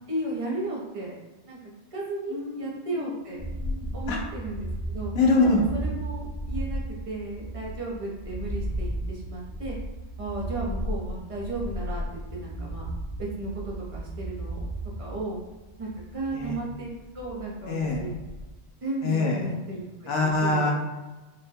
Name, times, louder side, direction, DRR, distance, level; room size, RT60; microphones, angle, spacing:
voice 1, 0.1-1.1 1.4-1.6 1.9-3.4 3.9-5.1 5.4-6.8 7.1-9.8 10.2-12.9 13.2-14.6 15.0-15.4 15.8-18.1 18.8-20.1 20.4-20.7, right 2 dB, 35° right, -4 dB, 0.7 m, -34 dB
voice 2, 2.3-3.8 4.1-4.2 5.1-5.6 16.3-16.5 17.7-18.0 19.0-19.4 20.1-20.7, left 3 dB, 90° left, -1 dB, 1.0 m, -25 dB
sound 1, 3.4-18.6, right 1 dB, 60° left, 0.3 m, -35 dB
4.0 x 2.2 x 2.6 m, 1.2 s
omnidirectional pair, 1.2 m